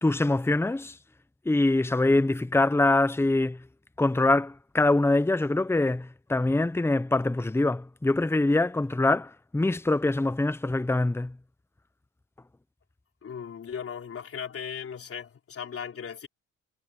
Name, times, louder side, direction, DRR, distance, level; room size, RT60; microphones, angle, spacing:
voice 1, 0.0-0.9 1.5-3.6 4.0-11.3, left 2 dB, 10° left, 0.9 m, -24 dB
voice 2, 13.2-16.3, left 7 dB, 50° left, 3.9 m, -37 dB
cardioid pair, 90°, 30 cm